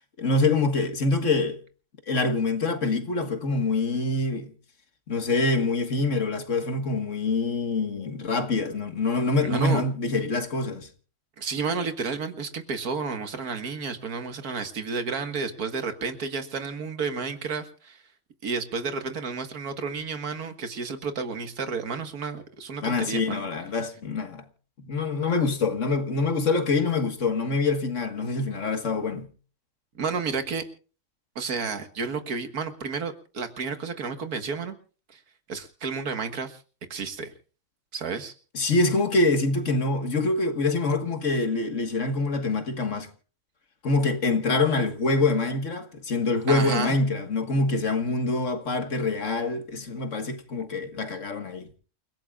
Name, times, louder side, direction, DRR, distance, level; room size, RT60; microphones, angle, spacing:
voice 1, 0.2-1.6 2.1-4.5 5.1-10.9 22.8-24.5 24.8-29.3 38.5-43.1 43.8-51.7, left 3 dB, 55° left, 1.9 m, -25 dB
voice 2, 9.4-9.8 11.4-18.0 18.4-23.4 30.0-30.7 31.4-34.7 35.1-35.2 35.5-36.6 36.9-37.3 37.9-38.3 46.5-47.0, right 5 dB, 75° right, 2.1 m, -31 dB
29.0 x 16.5 x 2.4 m
omnidirectional pair, 1.6 m